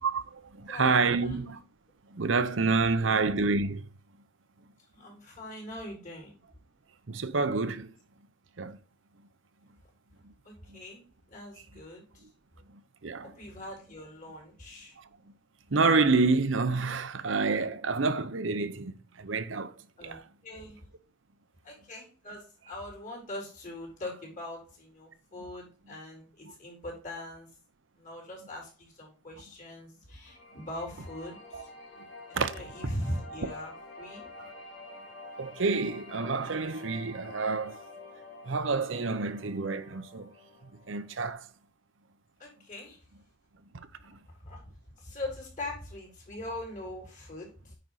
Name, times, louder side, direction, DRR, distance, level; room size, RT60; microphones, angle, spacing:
voice 1, 0.0-1.6 2.1-3.9 7.1-7.9 8.6-8.8 10.2-10.3 10.7-10.8 13.0-13.3 15.0-15.1 15.7-18.9 19.2-20.2 26.4-26.5 31.5-31.6 32.3-32.5 35.4-37.8 38.4-40.3 40.7-41.5 43.7-44.2, right 4 dB, 80° right, 0.8 m, -28 dB
voice 2, 0.7-1.4 3.0-3.2 4.9-6.4 10.4-12.2 13.2-15.0 20.0-20.8 21.6-27.5 28.0-31.7 32.3-34.3 42.4-43.0 44.4-44.7 45.0-47.8, left 1 dB, 45° left, 4.1 m, -41 dB
sound 1, 30.3-41.3, left 2 dB, 65° left, 3.0 m, -48 dB
9.0 x 5.2 x 4.1 m
head